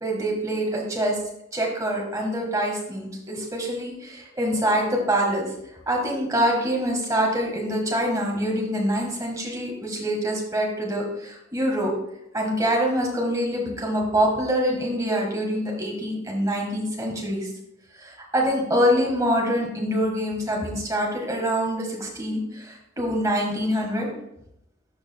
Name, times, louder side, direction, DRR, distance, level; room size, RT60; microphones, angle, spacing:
voice 1, 0.0-1.2 1.5-5.5 5.9-11.9 12.3-17.5 17.9-24.1, equal, 15° right, -1 dB, 1.6 m, -25 dB
12.0 x 4.9 x 2.3 m, 0.79 s
head